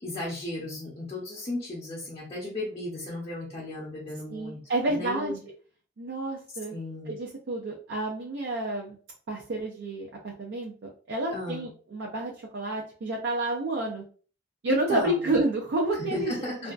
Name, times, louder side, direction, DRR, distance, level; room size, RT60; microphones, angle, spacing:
voice 1, 0.0-4.6 4.9-5.4 6.7-7.1 11.3-11.6 14.7-15.4 16.1-16.7, left 1 dB, 35° left, -4 dB, 0.6 m, -35 dB
voice 2, 4.3-5.4 6.0-6.7 7.1-9.0 9.3-14.0 14.6-16.3 16.6-16.7, right 1 dB, 75° right, -2 dB, 0.4 m, -30 dB
2.5 x 2.2 x 2.3 m, 0.41 s
head